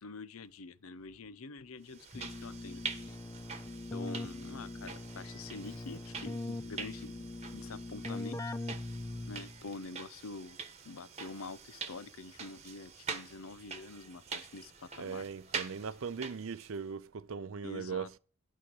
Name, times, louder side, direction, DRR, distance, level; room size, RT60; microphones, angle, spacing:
voice 1, 0.0-3.2 3.9-8.4 9.3-10.6 10.8-15.2 17.6-18.1, left 3 dB, 75° left, 0.7 m, -46 dB
sound 1, 1.9-16.8, right 5 dB, 30° right, 1.2 m, -45 dB
Keyboard (musical), 2.1-9.7, left 2 dB, 15° left, 0.4 m, -42 dB
voice 2, 15.0-18.2, right 6 dB, 65° right, 0.5 m, -39 dB
11.5 x 5.0 x 6.1 m
head